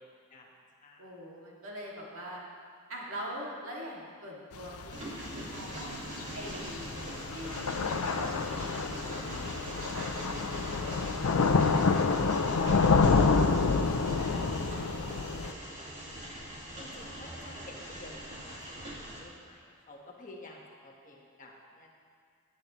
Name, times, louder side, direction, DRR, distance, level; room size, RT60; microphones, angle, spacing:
voice 1, 1.0-2.4 2.9-5.9 6.3-7.0 7.3-10.1 10.4-12.0 12.6-13.2 14.0-15.7, equal, 65° right, -4 dB, 2.5 m, -44 dB
Thunder / Rain, 4.5-15.5, left 4 dB, 80° left, 0.6 m, -28 dB
Train, 4.9-19.2, right 1 dB, 35° right, 2.3 m, -42 dB
voice 2, 16.7-21.9, left 2 dB, 35° left, -2 dB, 1.5 m, -51 dB
17.5 x 9.8 x 3.2 m, 2.1 s
head